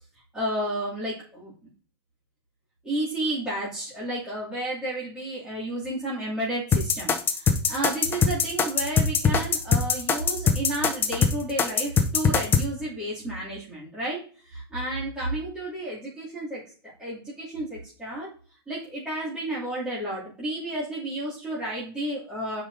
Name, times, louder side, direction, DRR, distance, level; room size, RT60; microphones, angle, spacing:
voice 1, 0.3-1.7 2.8-16.6 17.0-18.3 18.7-22.6, right 1 dB, 5° right, -11 dB, 2.7 m, -32 dB
sound 1, 6.7-12.6, left 6 dB, 15° left, 0.7 m, -22 dB
11.0 x 5.1 x 2.7 m, 0.42 s
supercardioid pair, 145°, 14 cm